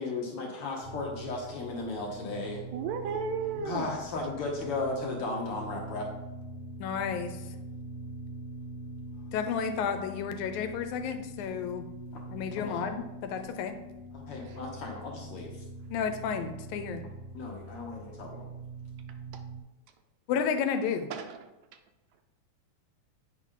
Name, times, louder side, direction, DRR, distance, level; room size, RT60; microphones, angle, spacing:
voice 1, 0.0-2.6 3.6-6.1 12.1-12.2 12.6-12.9 14.1-15.6 17.3-18.5, left 3 dB, 65° left, 0 dB, 1.5 m, -35 dB
sound 1, 0.8-19.6, right 1 dB, 5° left, 0.5 m, -43 dB
voice 2, 2.7-4.0 14.4-14.6 19.3-19.4 21.1-21.8, right 6 dB, 80° right, 7 dB, 1.8 m, -35 dB
voice 3, 6.8-7.4 9.3-11.9 12.3-13.7 15.9-17.0 20.3-21.1, left 6 dB, 80° left, 8 dB, 2.0 m, -32 dB
8.2 x 5.0 x 3.7 m, 1.0 s
omnidirectional pair, 3.4 m